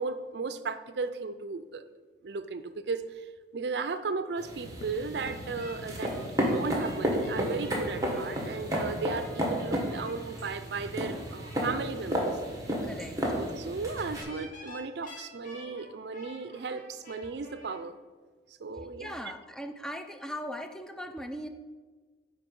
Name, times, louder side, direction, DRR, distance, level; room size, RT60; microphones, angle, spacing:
voice 1, 0.0-1.8 2.2-12.3 13.3-18.0 18.6-19.2, right 4 dB, 70° right, 12 dB, 0.5 m, -35 dB
sound 1, 4.2-4.3 4.7-9.3, left 2 dB, 65° left, 0.7 m, -46 dB
sound 2, 4.4-14.2, equal, 20° right, 1.5 m, -32 dB
sound 3, 5.2-11.7 14.1-17.8, left 1 dB, 50° left, 1.7 m, -50 dB
voice 2, 12.8-13.1 19.0-21.5, equal, 5° left, 6 dB, 0.5 m, -39 dB
9.3 x 3.9 x 5.3 m, 1.4 s
head